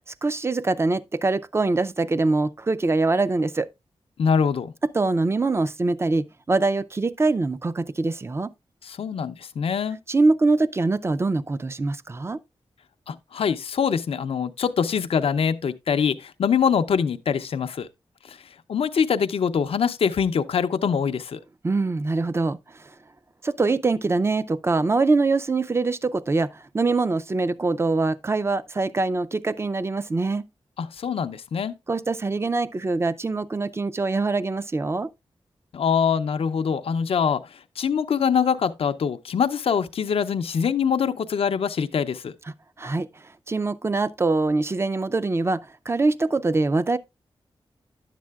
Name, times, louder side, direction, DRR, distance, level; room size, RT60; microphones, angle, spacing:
voice 1, 0.2-3.7 4.9-8.5 10.1-12.4 21.6-22.9 23.4-30.4 31.9-35.1 42.8-47.0, right 3 dB, 25° right, 0.4 m, -24 dB
voice 2, 4.2-4.7 8.8-10.0 13.1-17.9 18.2-18.4 18.7-21.4 30.8-31.7 35.7-42.3, left 7 dB, 75° left, 0.5 m, -24 dB
10.5 x 7.4 x 2.3 m
cardioid pair, 75°, 10 cm